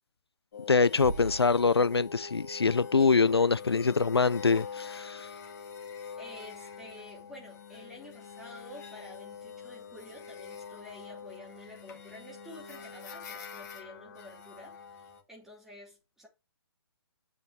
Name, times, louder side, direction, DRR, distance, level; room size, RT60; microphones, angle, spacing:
sound 1, 0.5-15.2, left 6 dB, 40° left, 2.4 m, -45 dB
voice 1, 0.7-5.3, left 4 dB, 80° left, 0.5 m, -24 dB
sound 2, 1.0-2.9, right 2 dB, 50° right, 4.8 m, -42 dB
voice 2, 6.2-16.3, left 1 dB, 5° right, 4.0 m, -50 dB
8.1 x 7.1 x 3.5 m
figure-of-eight pair, 130°, 13 cm